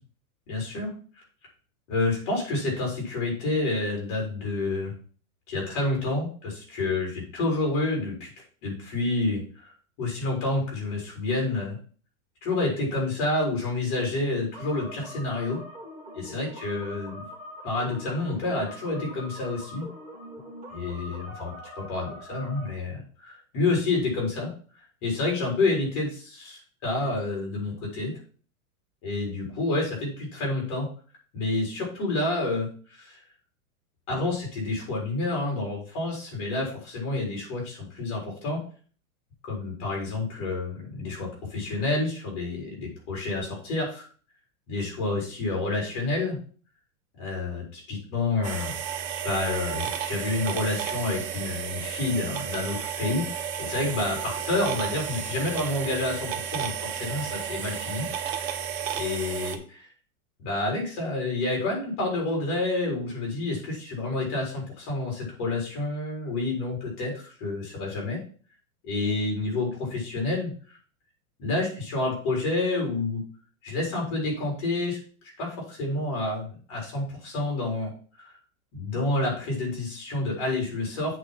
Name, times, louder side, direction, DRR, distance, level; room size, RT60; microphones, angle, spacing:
voice 1, 0.5-0.9 1.9-4.9 5.5-8.3 8.6-11.8 12.4-15.6 16.1-17.2 17.6-19.9 20.7-24.5 25.0-28.1 29.0-30.9 31.3-33.2 34.1-38.6 39.4-44.1 44.7-46.4 47.2-48.7 49.2-58.0 58.3-58.4 58.9-59.8 60.4-68.2 68.8-70.8 71.4-73.2 73.6-75.0 75.4-78.3 78.7-81.2, left 2 dB, 35° left, -1 dB, 4.3 m, -29 dB
sound 1, 14.5-22.7, equal, 15° right, 2.8 m, -43 dB
sound 2, 48.4-59.6, right 8 dB, 45° right, 1.0 m, -32 dB
8.1 x 4.3 x 5.9 m, 0.42 s
supercardioid pair, 175°, 44 cm